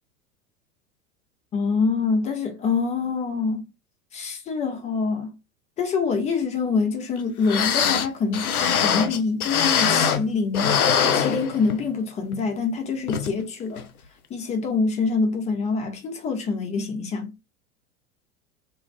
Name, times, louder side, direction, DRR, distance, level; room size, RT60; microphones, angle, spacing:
voice 1, 1.5-3.6 4.1-5.3 5.8-10.8 11.1-13.8 14.3-17.3, left 4 dB, 15° left, 0.5 m, -25 dB
sound 1, 7.2-7.3 7.4-10.3 10.5-11.9 12.3-12.4 13.1-13.3 13.8-13.9, left 7 dB, 80° left, 0.6 m, -22 dB
2.6 x 2.3 x 3.2 m
figure-of-eight pair, 85°, 43 cm